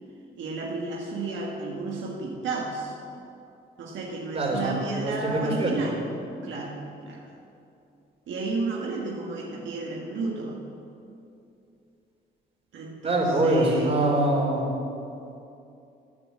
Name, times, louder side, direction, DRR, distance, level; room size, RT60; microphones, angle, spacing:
voice 1, 0.4-3.0 3.8-6.0 6.4-7.3 8.3-10.6 12.7-13.9, right 3 dB, 70° right, -2 dB, 1.6 m, -32 dB
voice 2, 4.3-4.7 5.0-5.8 13.0-14.7, right 1 dB, 30° right, -2 dB, 3.5 m, -24 dB
9.9 x 9.8 x 7.5 m, 2.7 s
cardioid pair, 90°, 20 cm